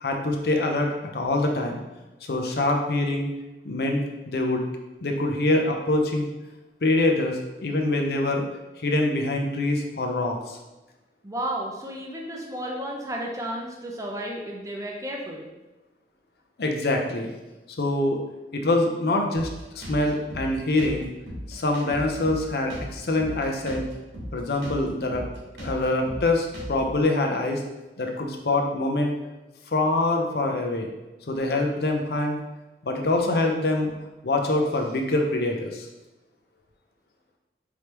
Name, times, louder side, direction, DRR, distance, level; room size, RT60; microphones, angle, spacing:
voice 1, 0.0-1.8 2.3-3.3 3.6-4.7 5.0-6.3 6.8-8.5 8.8-10.6 16.6-17.3 17.8-18.2 18.5-19.5 19.7-21.1 21.5-23.8 24.3-25.2 25.6-27.6 28.0-29.2 29.7-30.9 31.3-32.4 32.8-33.9 34.2-35.9, left 2 dB, 60° left, 2 dB, 0.6 m, -24 dB
voice 2, 11.2-15.4, right 1 dB, 20° right, 0 dB, 0.6 m, -33 dB
Drum kit, 19.3-27.0, equal, 85° right, 1.5 m, -37 dB
4.7 x 3.3 x 2.9 m, 1.1 s
head